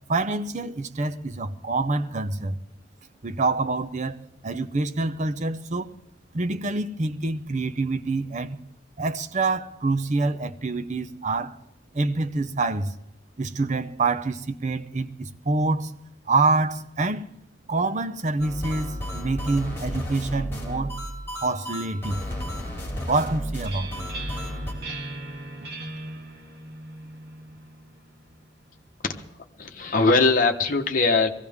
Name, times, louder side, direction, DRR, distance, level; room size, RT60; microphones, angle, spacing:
voice 1, 0.1-2.6 3.2-4.2 4.4-5.9 6.3-8.6 9.0-11.6 11.9-12.9 13.4-15.9 16.3-17.3 17.7-21.0 21.4-22.2 23.1-23.9, right 3 dB, 40° right, 0.8 m, -26 dB
sound 1, 18.4-24.7, equal, 15° left, 4.0 m, -33 dB
sound 2, 23.1-28.7, right 2 dB, 60° right, 2.1 m, -39 dB
voice 2, 29.6-31.3, left 3 dB, 45° left, 1.1 m, -21 dB
22.0 x 16.0 x 3.6 m
head